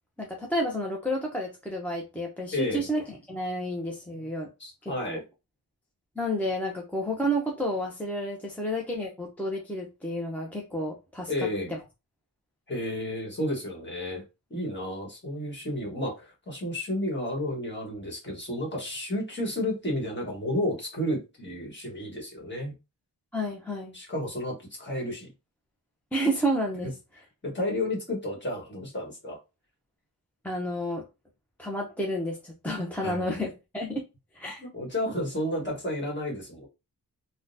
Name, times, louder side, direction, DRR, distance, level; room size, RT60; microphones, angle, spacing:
voice 1, 0.2-3.0 3.3-4.5 4.8-5.2 6.2-11.3 23.3-23.9 26.1-26.9 30.4-31.0 31.6-34.0 34.3-34.6, equal, 5° left, -1 dB, 0.6 m, -30 dB
voice 2, 2.5-2.9 4.1-4.3 4.6-5.2 11.3-11.7 12.7-14.2 14.5-22.7 23.9-25.3 26.8-26.9 27.4-29.4 33.0-33.4 34.6-36.7, left 1 dB, 30° left, -1 dB, 1.4 m, -32 dB
3.6 x 2.2 x 2.6 m, 0.27 s
wide cardioid pair, 115°, 39 cm